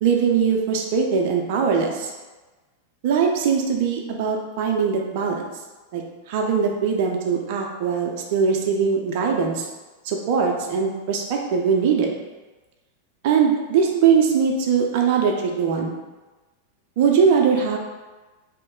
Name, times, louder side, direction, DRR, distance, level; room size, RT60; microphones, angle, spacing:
voice 1, 0.0-2.1 3.0-5.5 5.9-9.7 10.0-12.1 13.2-16.0 17.0-17.8, right 6 dB, 50° right, 1 dB, 0.5 m, -21 dB
3.1 x 2.8 x 3.5 m, 1.2 s
figure-of-eight pair, 90°, 0 cm